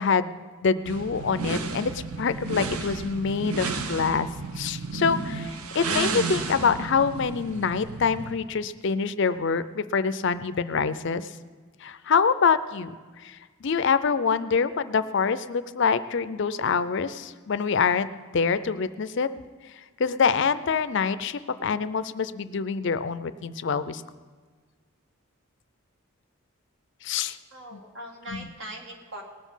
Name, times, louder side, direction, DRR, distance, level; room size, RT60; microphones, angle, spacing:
voice 1, 0.0-4.3 4.6-11.3 11.8-12.9 13.2-18.1 18.3-19.3 20.0-24.0 27.0-27.4 27.7-27.8 28.3-28.5, left 5 dB, 55° left, 14 dB, 0.4 m, -25 dB
sound 1, 0.9-8.4, right 4 dB, 85° right, 0.8 m, -32 dB
voice 2, 27.5-29.2, right 1 dB, 55° right, 1 dB, 2.1 m, -40 dB
19.0 x 7.2 x 5.6 m, 1.5 s
head